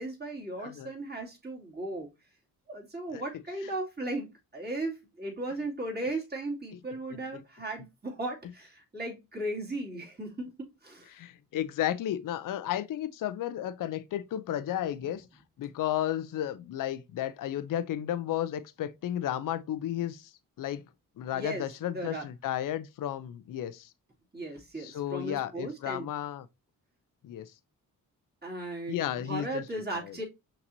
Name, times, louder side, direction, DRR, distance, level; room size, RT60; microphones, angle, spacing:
voice 1, 0.0-2.1 2.7-11.1 15.0-15.1 21.3-22.3 24.3-26.1 28.4-30.2, right 1 dB, 25° right, 2.2 m, -37 dB
voice 2, 11.1-15.2 15.6-20.3 20.6-20.9 21.2-23.9 24.8-26.5 27.2-27.5 28.9-29.6 30.0-30.2, left 11 dB, 55° left, 0.5 m, -33 dB
5.9 x 2.9 x 2.6 m
supercardioid pair, 55°, 38 cm